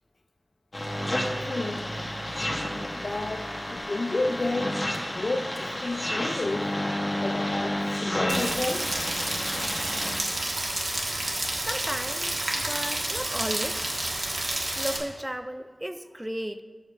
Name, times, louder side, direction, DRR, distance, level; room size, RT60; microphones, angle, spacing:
sound 1, 0.7-10.2, left 1 dB, 40° left, 1.3 m, -31 dB
voice 1, 1.4-2.0 3.0-6.7 7.2-8.9, left 2 dB, 65° left, 6 dB, 0.3 m, -31 dB
Rain, 8.3-15.0, right 1 dB, 60° right, 1.3 m, -30 dB
voice 2, 11.7-13.8 14.8-16.6, right 1 dB, 15° right, 10 dB, 0.3 m, -34 dB
6.4 x 5.3 x 6.2 m, 1.5 s
wide cardioid pair, 55°, 0 cm